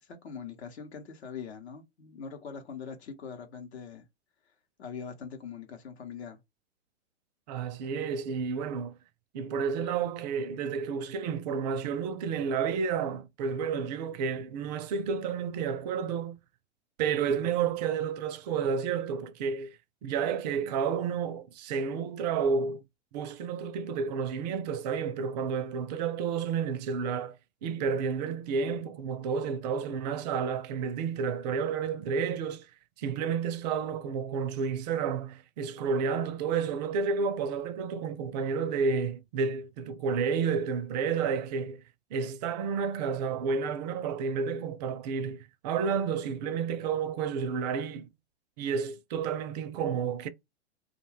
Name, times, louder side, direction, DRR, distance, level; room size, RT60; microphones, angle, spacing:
voice 1, 0.0-4.0 4.8-6.4, left 6 dB, 70° left, 0.8 m, -42 dB
voice 2, 7.5-9.0 9.3-16.4 17.0-22.8 23.1-32.7 33.0-41.8 42.1-48.1 48.6-50.3, right 6 dB, 40° right, 0.4 m, -31 dB
2.4 x 2.2 x 3.2 m
hypercardioid pair, 120°, 33 cm